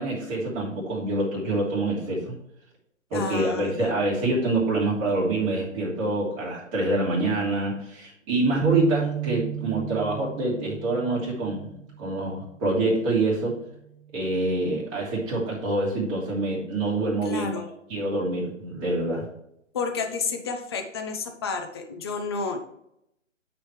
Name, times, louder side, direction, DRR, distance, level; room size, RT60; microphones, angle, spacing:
voice 1, 0.0-2.3 3.1-11.7 12.0-13.5 14.1-17.5 17.9-19.2, right 2 dB, 25° right, -6 dB, 2.9 m, -26 dB
voice 2, 3.1-3.9 17.2-17.7 19.7-22.6, left 4 dB, 20° left, 5 dB, 0.6 m, -31 dB
sound 1, 8.6-12.1, right 11 dB, 70° right, 0.6 m, -31 dB
9.1 x 5.1 x 3.2 m, 0.79 s
figure-of-eight pair, 140°, 39 cm